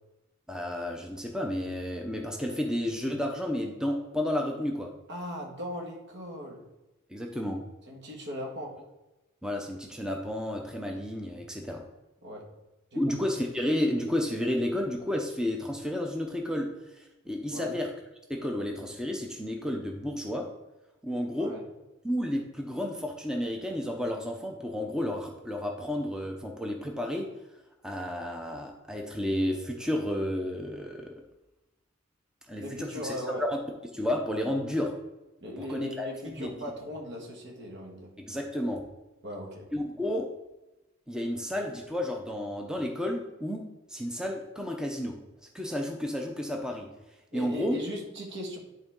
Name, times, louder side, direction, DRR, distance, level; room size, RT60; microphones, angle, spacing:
voice 1, 0.5-4.9 7.1-7.6 9.4-11.8 13.0-17.9 18.3-20.5 21.0-21.5 22.0-27.3 27.8-31.1 32.5-33.6 33.9-34.9 35.6-36.1 36.4-36.5 38.2-38.8 39.7-40.3 41.1-43.6 43.9-45.2 45.5-46.9 47.3-47.8, left 1 dB, 5° right, 1 dB, 0.6 m, -31 dB
voice 2, 5.1-6.7 7.9-8.7 12.2-12.4 12.9-13.0 17.5-17.8 21.4-21.6 32.6-33.4 35.4-38.1 39.2-39.7 47.3-48.6, equal, 60° right, 0 dB, 1.7 m, -38 dB
10.5 x 3.9 x 3.7 m, 1.0 s
head